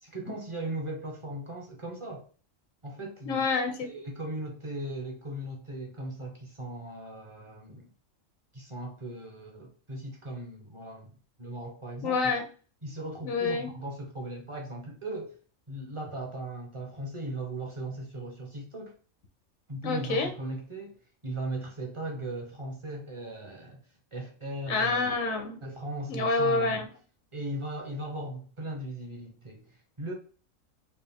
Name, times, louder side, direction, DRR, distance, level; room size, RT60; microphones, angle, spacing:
voice 1, 0.0-2.3 2.8-3.5 3.8-7.9 8.5-11.1 11.4-12.3 12.8-15.4 15.7-18.9 19.7-21.0 21.2-23.8 24.1-25.0 25.6-26.8 27.3-30.1, right 1 dB, 25° right, 0.8 m, -38 dB
voice 2, 3.3-3.9 12.0-12.4 13.2-13.7 19.8-20.3 24.7-25.6 26.1-26.9, left 3 dB, 75° left, 1.2 m, -27 dB
4.5 x 2.4 x 3.5 m
omnidirectional pair, 1.4 m